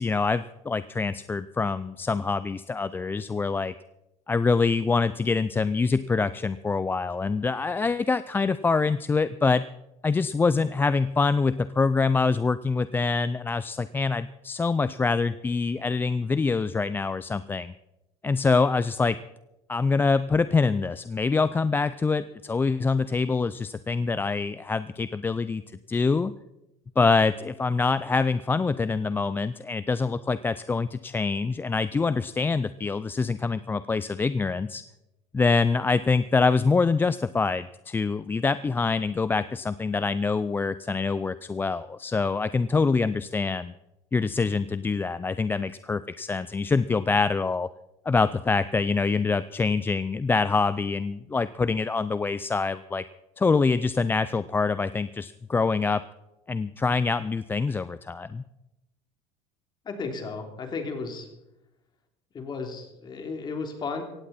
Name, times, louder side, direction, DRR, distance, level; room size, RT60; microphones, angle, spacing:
voice 1, 0.0-3.7 4.3-9.6 10.0-17.7 18.2-19.2 19.7-25.6 25.9-26.3 27.0-34.8 35.3-43.7 44.1-47.7 48.1-53.0 53.4-56.0 56.5-58.4, left 4 dB, 15° left, 15 dB, 0.4 m, -25 dB
voice 2, 59.8-61.3 62.3-64.0, left 4 dB, 35° left, 4 dB, 3.2 m, -34 dB
17.0 x 15.5 x 4.3 m, 0.91 s
supercardioid pair, 115°, 13 cm